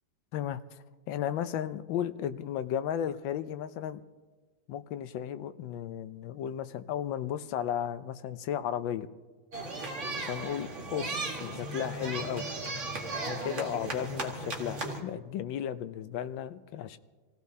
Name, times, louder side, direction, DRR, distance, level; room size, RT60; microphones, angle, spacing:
voice 1, 0.3-4.0 4.7-9.1 10.2-12.5 13.1-17.0, left 10 dB, 80° left, 11 dB, 1.4 m, -34 dB
sound 1, 9.5-15.0, right 2 dB, 40° right, 2.0 m, -36 dB
27.0 x 16.0 x 2.8 m, 1.3 s
omnidirectional pair, 2.1 m